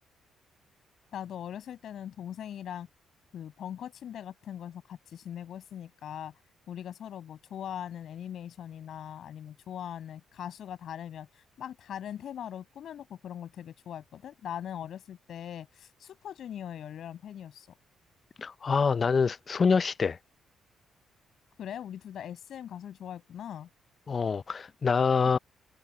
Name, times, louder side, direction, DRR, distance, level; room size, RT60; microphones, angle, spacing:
voice 1, 1.1-2.9 3.3-6.3 6.7-17.8 21.6-23.7, left 10 dB, 65° left, 6.2 m, -41 dB
voice 2, 18.4-20.2 24.1-25.4, left 5 dB, 40° left, 0.5 m, -26 dB
cardioid pair, 90°, 0 cm